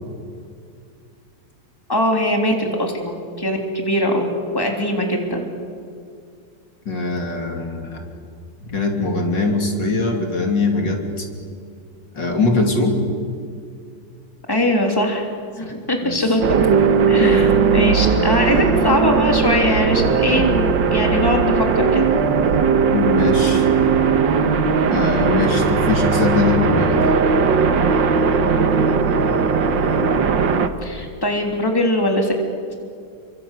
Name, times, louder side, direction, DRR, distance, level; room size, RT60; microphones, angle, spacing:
voice 1, 1.9-4.3 4.5-5.5 14.5-15.3 15.6-16.4 17.1-22.1 28.4-28.7 30.8-32.3, left 1 dB, 10° left, 2 dB, 3.3 m, -21 dB
voice 2, 6.9-8.0 8.7-11.3 12.2-13.0 16.0-16.2 17.2-17.5 18.2-18.9 22.9-23.7 24.9-27.2, left 2 dB, 75° left, 2 dB, 3.8 m, -22 dB
sound 1, 16.4-30.7, right 5 dB, 80° right, 2.0 m, -18 dB
30.0 x 24.0 x 8.3 m, 2.3 s
omnidirectional pair, 2.0 m